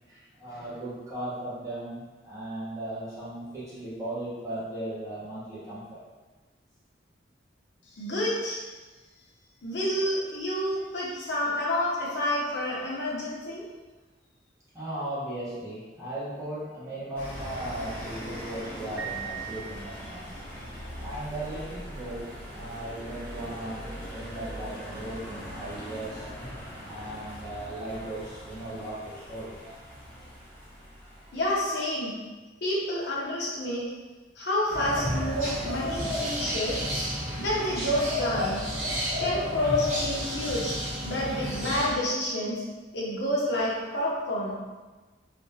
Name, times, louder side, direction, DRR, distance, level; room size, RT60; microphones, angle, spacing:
voice 1, 0.1-6.0 14.7-20.3 21.0-26.3 26.8-29.6, right 1 dB, 15° right, -11 dB, 1.2 m, -37 dB
voice 2, 8.0-8.6 9.6-13.6 31.3-32.1 32.6-33.9 34.4-36.8 37.4-38.6 39.2-40.8 41.0-42.6 42.9-44.5, left 1 dB, 65° left, -5 dB, 0.8 m, -29 dB
sound 1, 17.2-31.8, equal, 10° left, 1.3 m, -41 dB
Piano, 19.0-20.4, right 9 dB, 75° right, 0.6 m, -39 dB
sound 2, 34.7-41.9, equal, 40° right, 1.3 m, -31 dB
3.4 x 2.8 x 2.7 m, 1.3 s
head